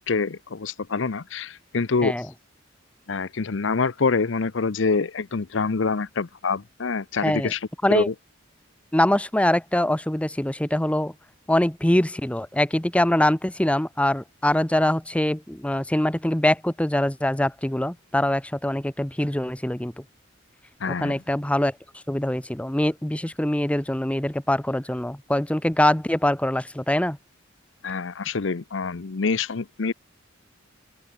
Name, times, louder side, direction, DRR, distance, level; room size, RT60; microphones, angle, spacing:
voice 1, 0.1-2.1 3.1-7.6 7.9-8.1 20.8-21.2 27.8-29.9, left 4 dB, 65° left, 0.7 m, -26 dB
voice 2, 7.2-7.5 7.8-8.1 8.9-11.1 11.5-19.9 20.9-21.7 22.1-27.2, left 1 dB, 5° left, 0.7 m, -23 dB
open air
head